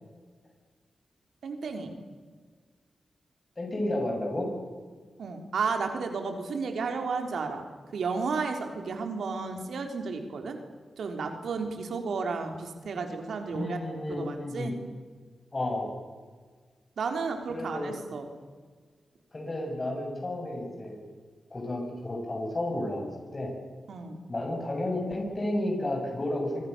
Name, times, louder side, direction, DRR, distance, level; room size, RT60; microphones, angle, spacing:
voice 1, 1.4-1.9 5.2-7.6 7.9-10.6 11.0-13.8 14.2-14.7 17.0-18.3 23.9-24.2, right 4 dB, 85° right, 5 dB, 3.6 m, -32 dB
voice 2, 3.6-4.5 13.5-14.8 15.5-16.0 17.5-17.9 19.3-21.1 21.5-23.5 24.3-26.7, left 1 dB, 30° left, 1 dB, 7.3 m, -32 dB
26.0 x 24.5 x 6.9 m, 1.5 s
wide cardioid pair, 100°, 0 cm